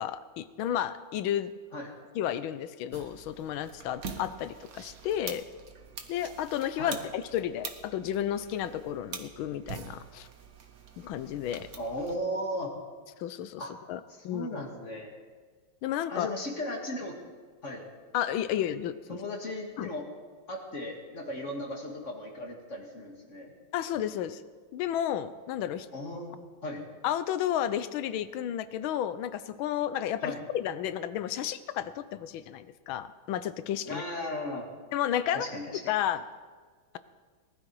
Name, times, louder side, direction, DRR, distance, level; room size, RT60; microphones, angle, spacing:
voice 1, 0.0-1.5 2.1-5.4 6.1-10.3 11.0-11.7 13.2-13.6 13.9-14.6 15.8-16.3 18.1-19.2 19.8-19.9 23.7-24.4 24.7-25.9 27.0-34.0 34.9-35.5 35.9-36.2, left 10 dB, 80° left, 14 dB, 1.5 m, -32 dB
sound 1, 2.9-12.2, right 6 dB, 50° right, 1.3 m, -45 dB
voice 2, 11.8-12.7 13.6-13.7 14.1-15.1 16.1-17.1 17.6-17.8 19.1-20.1 20.5-23.5 25.9-26.8 30.2-30.4 33.9-34.7 35.3-35.8, left 1 dB, 35° left, 1 dB, 2.0 m, -36 dB
19.5 x 12.0 x 4.7 m, 1.5 s
omnidirectional pair, 2.3 m